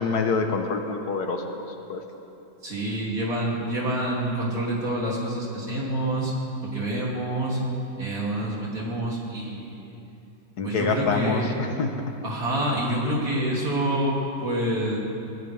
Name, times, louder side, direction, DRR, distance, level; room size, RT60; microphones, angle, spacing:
voice 1, 0.0-1.4 1.9-2.0 10.6-11.4 11.8-11.9, left 4 dB, 85° left, 4 dB, 1.7 m, -25 dB
voice 2, 2.6-6.3 6.7-7.6 8.0-10.0 10.6-11.5 12.2-15.0, right 1 dB, 60° right, -4 dB, 3.4 m, -27 dB
21.5 x 17.5 x 3.5 m, 2.8 s
omnidirectional pair, 1.6 m